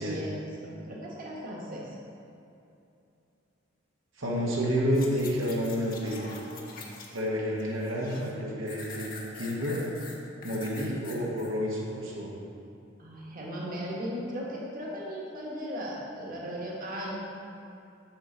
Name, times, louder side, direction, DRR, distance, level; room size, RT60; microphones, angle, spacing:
voice 1, 0.0-1.9 13.0-17.2, equal, 45° right, -4 dB, 1.4 m, -37 dB
voice 2, 4.2-6.3 7.1-9.1 9.3-9.8 10.4-12.3, equal, 80° right, -4 dB, 1.3 m, -29 dB
sound 1, 4.9-7.3 7.6-8.3 8.7-11.5 12.0-12.1, left 4 dB, 50° left, 1.0 m, -44 dB
7.8 x 6.9 x 3.9 m, 2.7 s
head